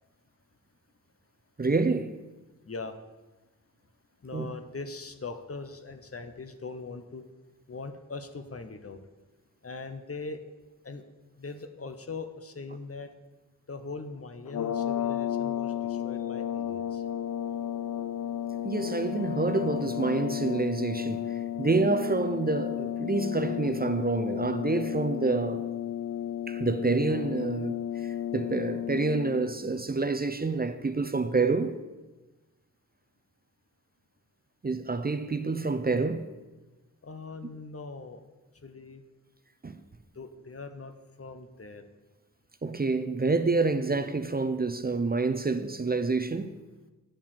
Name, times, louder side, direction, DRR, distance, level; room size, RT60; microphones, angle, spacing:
voice 1, 1.6-2.2 4.3-4.5 18.6-25.7 26.5-31.7 34.6-36.3 39.6-39.8 42.6-46.6, right 3 dB, 30° right, 0.5 m, -28 dB
voice 2, 4.2-7.2 7.7-9.0 9.6-10.4 10.8-11.0 11.4-13.1 13.7-17.0 37.0-38.2 38.6-39.0 40.2-40.9 41.2-41.8, left 3 dB, 45° left, 0.9 m, -41 dB
sound 1, 14.4-29.6, left 10 dB, 70° left, 0.5 m, -33 dB
8.8 x 4.6 x 7.4 m
wide cardioid pair, 55°, 32 cm